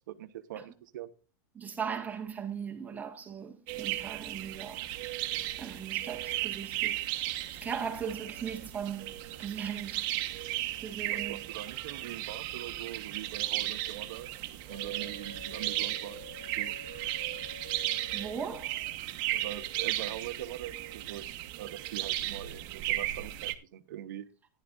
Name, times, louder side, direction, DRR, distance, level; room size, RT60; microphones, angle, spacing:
voice 1, 0.1-1.1 11.0-14.3 14.7-16.2 16.6-16.7 19.3-21.3 21.6-24.2, right 12 dB, 80° right, 0.9 m, -42 dB
voice 2, 1.6-4.9 5.6-7.0 7.3-9.1 9.4-10.0 10.8-11.4 18.1-18.8, right 7 dB, 15° right, 1.7 m, -38 dB
sound 1, 3.7-23.5, right 15 dB, 45° right, 1.2 m, -35 dB
Wind instrument woodwind instrument, 14.7-18.8, left 5 dB, 65° left, 7.1 m, -50 dB
14.5 x 11.0 x 2.6 m
supercardioid pair, 145°, 10 cm